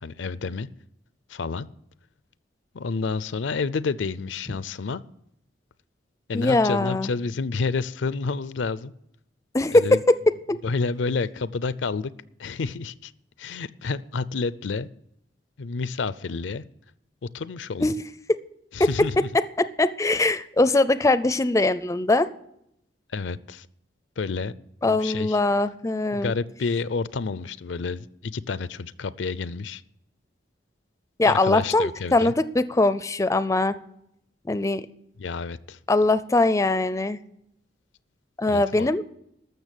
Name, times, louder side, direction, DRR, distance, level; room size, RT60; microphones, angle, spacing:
voice 1, 0.0-0.7 1.3-1.7 2.7-5.0 6.3-8.9 9.7-10.0 10.6-12.1 12.4-13.1 13.4-14.9 15.6-16.6 17.3-17.9 18.7-19.3 23.1-23.7 24.2-24.5 24.8-25.4 26.1-29.8 31.2-32.3 35.2-35.8 38.4-38.9, left 4 dB, 75° left, 17 dB, 0.5 m, -29 dB
voice 2, 6.3-7.1 9.5-10.6 17.8-17.9 19.2-19.3 19.6-22.3 24.8-26.3 31.2-33.8 34.5-34.8 35.9-37.2 38.4-39.0, left 2 dB, 15° left, 14 dB, 0.4 m, -21 dB
14.0 x 6.5 x 8.2 m, 0.76 s
head